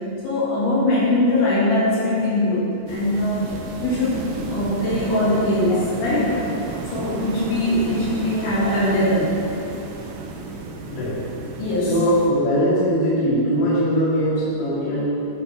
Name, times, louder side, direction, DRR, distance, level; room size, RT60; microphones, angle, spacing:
voice 1, 0.2-2.6 2.9-3.4 3.8-4.2 4.5-6.4 6.9-9.3 11.6-11.9, left 1 dB, 90° left, -9 dB, 4.9 m, -21 dB
sound 1, 2.9-12.3, right 3 dB, 90° right, 1.8 m, -33 dB
voice 2, 11.8-15.2, equal, 70° left, -10 dB, 4.7 m, -21 dB
9.6 x 9.2 x 4.6 m, 2.8 s
omnidirectional pair, 5.0 m